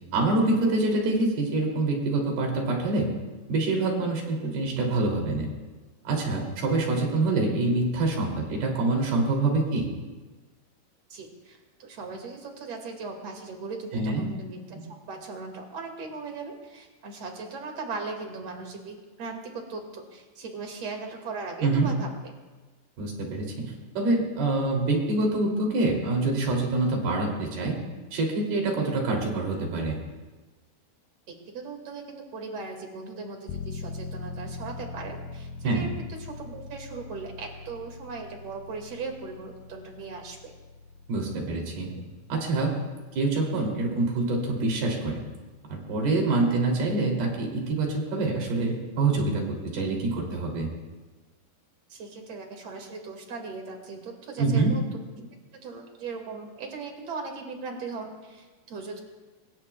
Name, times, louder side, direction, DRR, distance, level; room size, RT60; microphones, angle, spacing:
voice 1, 0.1-3.1 3.5-5.5 6.0-9.9 13.9-14.3 21.6-21.9 23.0-27.8 28.1-30.0 35.6-35.9 41.1-41.9 42.3-42.7 43.2-45.2 45.7-50.7 54.4-54.7, right 2 dB, 70° right, 0 dB, 4.9 m, -26 dB
voice 2, 11.1-22.1 31.3-35.9 36.2-40.5 41.9-42.0 51.9-54.8 55.2-55.3 55.5-59.0, right 4 dB, 45° right, 2 dB, 2.9 m, -38 dB
sound 1, 33.5-46.0 46.4-46.5, left 4 dB, 80° left, 2.5 m, -43 dB
25.5 x 21.5 x 2.4 m, 1.2 s
omnidirectional pair, 4.7 m